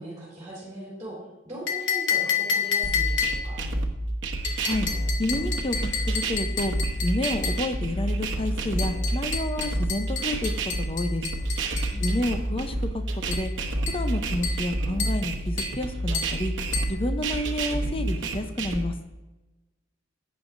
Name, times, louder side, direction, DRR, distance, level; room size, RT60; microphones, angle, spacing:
voice 1, 0.0-3.6 11.9-12.5, right 1 dB, 15° right, -7 dB, 3.4 m, -40 dB
sound 1, 1.7-3.6 4.4-7.7 8.8-12.2 13.3-13.5 13.9-14.1 14.4-14.7 15.0-15.3 15.6-15.8 16.1-16.4 16.7-17.0, left 6 dB, 65° left, 1.3 m, -30 dB
sound 2, 2.8-18.8, right 1 dB, 65° right, 1.0 m, -29 dB
voice 2, 5.2-6.7 7.0-11.2 12.0-13.5 13.9-16.5 16.9-18.9, left 1 dB, 30° left, 7 dB, 0.7 m, -30 dB
11.0 x 9.2 x 2.6 m, 1.1 s
head